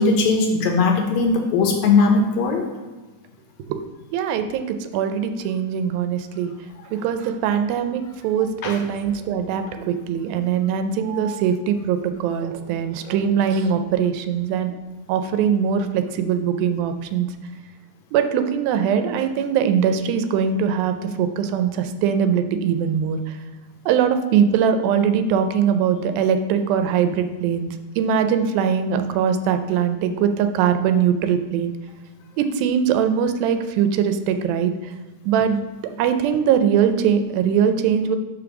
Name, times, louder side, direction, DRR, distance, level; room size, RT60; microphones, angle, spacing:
voice 1, 0.0-2.7 8.6-8.8, left 4 dB, 85° left, 2 dB, 1.6 m, -19 dB
voice 2, 4.1-6.5 6.9-14.8 15.1-17.3 18.1-23.4 23.9-31.7 32.4-34.9 35.3-35.6 36.0-38.2, right 7 dB, 85° right, 8 dB, 2.3 m, -21 dB
5.2 x 5.1 x 5.9 m, 1.2 s
omnidirectional pair, 4.2 m